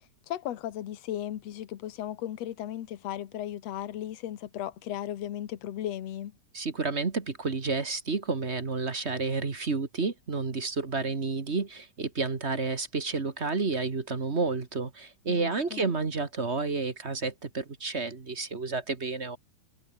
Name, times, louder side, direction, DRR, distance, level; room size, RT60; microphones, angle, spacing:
voice 1, 0.3-6.4 15.3-15.8, left 12 dB, 65° left, 2.5 m, -36 dB
voice 2, 6.5-19.4, right 4 dB, 30° right, 1.5 m, -30 dB
omnidirectional pair, 3.3 m